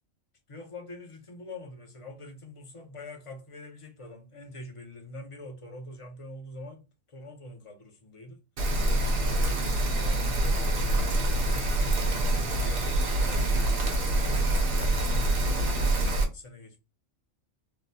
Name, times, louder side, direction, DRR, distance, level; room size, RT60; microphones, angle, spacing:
voice 1, 0.5-8.4 9.4-11.7 12.6-13.6 14.7-16.8, left 1 dB, 40° left, 0.5 m, -45 dB
Rain, 8.6-16.2, right 1 dB, 50° right, 0.8 m, -25 dB
3.9 x 2.0 x 2.6 m
omnidirectional pair, 1.4 m